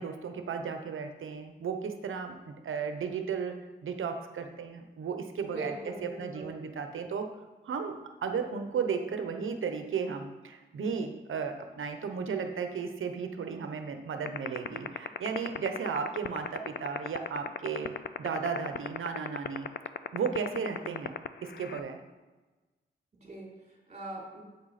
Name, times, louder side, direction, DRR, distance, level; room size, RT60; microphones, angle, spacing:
voice 1, 0.0-3.5 3.8-7.3 7.6-19.7 20.1-21.1 21.4-22.0, right 6 dB, 85° right, 6 dB, 0.9 m, -34 dB
voice 2, 5.5-6.5 23.2-24.4, right 1 dB, 35° right, -3 dB, 3.3 m, -42 dB
sound 1, 14.3-21.8, left 9 dB, 55° left, 0.5 m, -32 dB
8.0 x 7.9 x 4.2 m, 1.2 s
cardioid pair, 75°, 20 cm